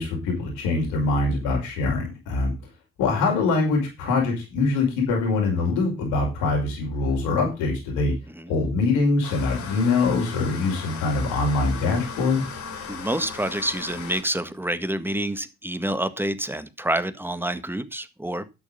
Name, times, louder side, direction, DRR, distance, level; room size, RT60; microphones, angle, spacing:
voice 1, 0.0-2.5 3.0-8.1 8.5-12.5, left 3 dB, 80° left, 0 dB, 5.4 m, -23 dB
sound 1, 9.2-14.2, left 6 dB, 65° left, 3.5 m, -37 dB
voice 2, 12.9-18.6, right 1 dB, 5° right, 12 dB, 1.6 m, -28 dB
12.0 x 6.6 x 5.5 m, 0.27 s
hypercardioid pair, 55°, 30 cm